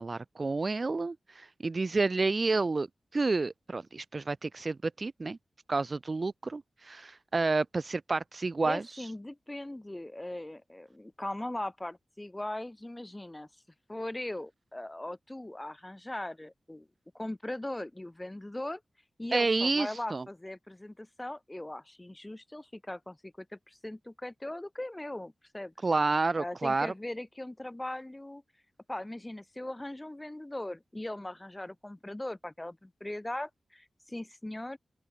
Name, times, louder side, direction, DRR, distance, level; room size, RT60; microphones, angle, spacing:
voice 1, 0.0-2.9 3.1-5.4 5.7-8.8 19.3-20.2 25.8-26.9, right 3 dB, 40° right, 0.4 m, -29 dB
voice 2, 8.6-13.5 13.9-16.9 17.1-18.8 19.2-25.7 26.4-28.4 28.9-34.8, left 1 dB, 15° left, 0.9 m, -39 dB
open air
wide cardioid pair, 85°, 0 cm